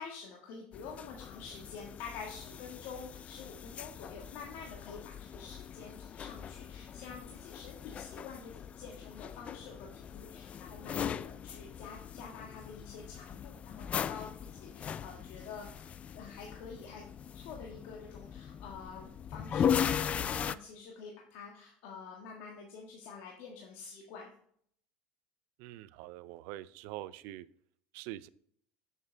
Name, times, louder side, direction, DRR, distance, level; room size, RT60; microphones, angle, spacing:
voice 1, 0.0-17.0 17.3-24.3, left 5 dB, 70° left, 0 dB, 1.6 m, -48 dB
sound 1, 0.7-20.6, left 8 dB, 35° left, 0.3 m, -39 dB
voice 2, 25.6-27.5 27.9-28.3, right 15 dB, 70° right, 17 dB, 0.4 m, -44 dB
9.4 x 6.8 x 3.4 m, 0.63 s
supercardioid pair, 110°, 4 cm